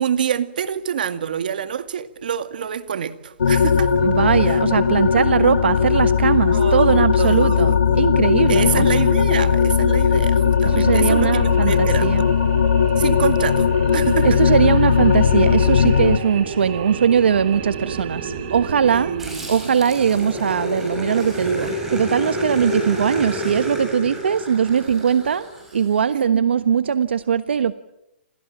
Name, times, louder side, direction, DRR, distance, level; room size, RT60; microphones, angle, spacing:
voice 1, 0.0-4.0 4.5-4.6 6.5-8.0 8.5-12.3 13.0-14.4 18.8-19.6 26.1-26.4, right 8 dB, 50° right, 2.1 m, -26 dB
sound 1, 3.4-16.2, left 7 dB, 90° left, 2.2 m, -18 dB
voice 2, 4.0-8.8 10.6-12.2 14.2-19.1 19.5-27.7, right 7 dB, 75° right, 1.3 m, -20 dB
sound 2, 10.4-20.7, right 6 dB, 30° right, 3.9 m, -33 dB
Growling, 19.2-25.9, equal, 5° right, 6.6 m, -29 dB
28.5 x 28.0 x 7.4 m
hypercardioid pair, 180°, 6 cm